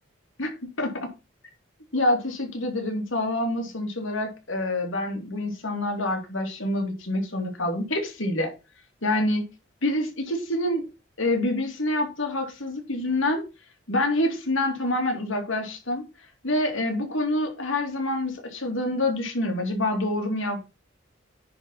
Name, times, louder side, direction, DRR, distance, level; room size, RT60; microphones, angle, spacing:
voice 1, 0.4-1.1 1.9-8.5 9.0-9.5 9.8-10.8 11.2-13.4 13.9-16.0 16.4-20.7, left 1 dB, 80° left, 3.1 m, -26 dB
9.9 x 4.5 x 6.0 m
head